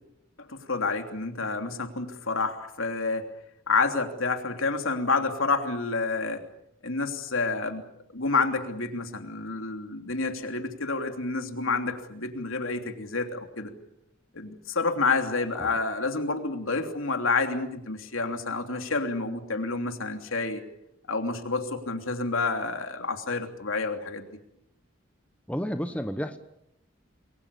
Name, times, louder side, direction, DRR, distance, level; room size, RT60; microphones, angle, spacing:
voice 1, 0.4-3.3 3.7-6.4 6.8-7.8 8.1-13.7 14.3-20.6 21.1-24.3, left 3 dB, 80° left, 5 dB, 3.1 m, -29 dB
voice 2, 25.5-26.4, equal, 5° left, 8 dB, 1.1 m, -31 dB
28.0 x 22.5 x 7.1 m, 0.80 s
head